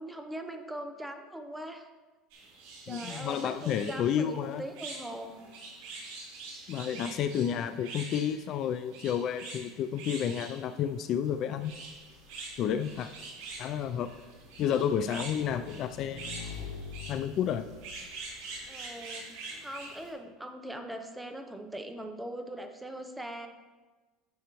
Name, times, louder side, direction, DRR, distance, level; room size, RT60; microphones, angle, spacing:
voice 1, 0.0-1.9 2.9-5.4 18.7-23.5, right 1 dB, 5° right, 5 dB, 0.7 m, -41 dB
sound 1, 2.3-20.1, right 3 dB, 75° right, 2.7 m, -45 dB
voice 2, 2.9-4.6 6.7-11.7 12.6-13.1 13.6-14.1 14.6-16.3 17.1-17.6, left 9 dB, 45° left, 10 dB, 0.3 m, -31 dB
Motorcycle / Engine, 11.7-18.7, left 6 dB, 85° left, 0.8 m, -47 dB
10.0 x 6.3 x 3.0 m, 1.3 s
supercardioid pair, 135°, 0 cm